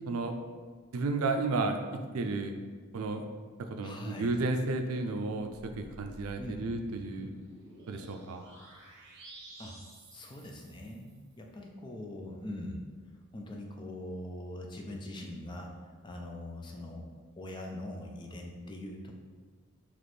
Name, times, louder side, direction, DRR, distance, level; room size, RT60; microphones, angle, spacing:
voice 1, 0.9-2.5 2.9-3.3 3.7-5.5 5.8-7.3 7.9-8.4, right 3 dB, 90° right, 6 dB, 0.4 m, -32 dB
voice 2, 3.8-4.3 6.4-6.7 9.6-9.8 10.1-12.8 13.3-15.7 16.0-17.1 17.4-19.2, left 1 dB, 20° left, 1 dB, 0.4 m, -42 dB
sound 1, 5.4-11.2, right 1 dB, 55° right, 0.8 m, -52 dB
4.1 x 3.0 x 3.2 m, 1.5 s
head